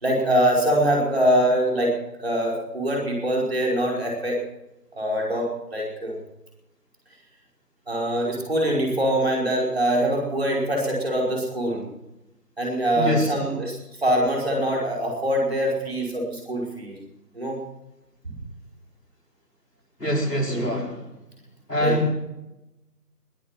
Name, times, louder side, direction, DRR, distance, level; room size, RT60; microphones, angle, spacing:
voice 1, 0.0-4.4 4.9-6.2 7.9-11.9 12.6-13.8 14.0-17.0 17.4-17.6 20.5-20.6 21.8-21.9, right 1 dB, 40° right, -2 dB, 5.3 m, -23 dB
voice 2, 13.0-13.3 20.0-21.0 21.7-22.1, left 1 dB, 80° left, 0 dB, 5.4 m, -24 dB
21.5 x 10.5 x 6.1 m, 0.93 s
figure-of-eight pair, 170°, 48 cm